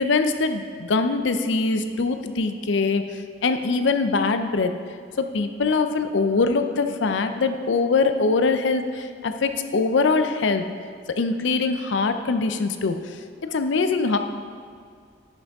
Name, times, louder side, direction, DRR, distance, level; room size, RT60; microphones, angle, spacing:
voice 1, 0.0-3.0 3.4-4.7 5.2-10.6 11.1-13.0 13.5-14.2, left 4 dB, 65° left, 8 dB, 0.5 m, -22 dB
10.5 x 6.1 x 3.5 m, 2.2 s
head